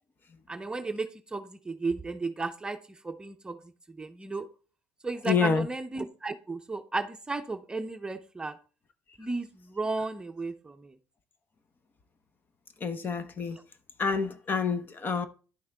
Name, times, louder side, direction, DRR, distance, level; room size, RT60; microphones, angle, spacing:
voice 1, 0.5-3.6 3.9-4.5 5.0-8.6 9.2-10.9, right 3 dB, 15° right, 0.8 m, -34 dB
voice 2, 5.2-5.7 12.8-13.6 14.0-15.3, left 5 dB, 35° left, 1.0 m, -27 dB
11.0 x 6.2 x 3.5 m
cardioid pair, 100°, 6 cm